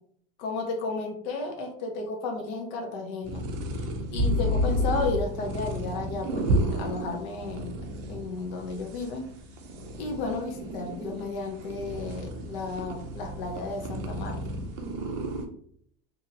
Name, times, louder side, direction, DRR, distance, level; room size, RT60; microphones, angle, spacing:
voice 1, 0.4-3.4 4.1-7.8 8.1-9.3 10.0-14.4, left 3 dB, 80° left, 1 dB, 0.9 m, -33 dB
sound 1, 3.2-15.4, equal, 40° right, 0.4 m, -31 dB
2.8 x 2.7 x 2.6 m, 0.62 s
cardioid pair, 180°, 29 cm